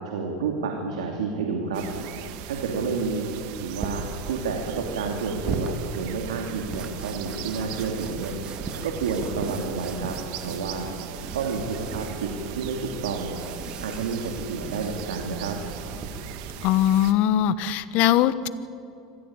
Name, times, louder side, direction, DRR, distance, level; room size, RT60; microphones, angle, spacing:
voice 1, 0.0-1.8 2.5-3.3 3.6-8.3 8.8-10.1 10.4-10.9 11.3-12.3 12.5-13.4 13.8-15.6, right 4 dB, 80° right, 2 dB, 2.7 m, -29 dB
sound 1, 1.7-17.1, right 9 dB, 60° right, 1.7 m, -39 dB
sound 2, 3.8-16.7, right 3 dB, 25° right, 2.2 m, -38 dB
voice 2, 16.6-18.5, left 11 dB, 55° left, 15 dB, 1.1 m, -21 dB
25.0 x 15.5 x 8.9 m, 2.7 s
hypercardioid pair, 100°, 3 cm